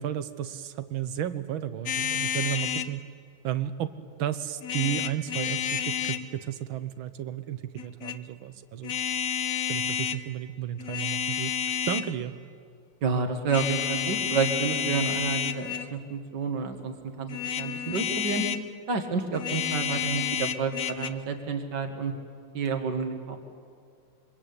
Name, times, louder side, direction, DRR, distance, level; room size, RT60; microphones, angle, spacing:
voice 1, 0.0-3.0 3.4-3.9 4.2-8.9 9.7-11.5 11.9-12.3, right 11 dB, 85° right, 12 dB, 1.9 m, -33 dB
sound 1, 1.9-2.9 4.6-6.3 7.8-8.2 8.8-10.2 10.8-12.2 13.5-15.9 17.3-18.7 19.3-21.1, left 8 dB, 55° left, 1.1 m, -30 dB
voice 2, 13.0-18.4 18.9-22.1 22.5-23.4, right 4 dB, 60° right, 5 dB, 2.5 m, -30 dB
26.5 x 24.5 x 8.6 m, 2.2 s
omnidirectional pair, 2.2 m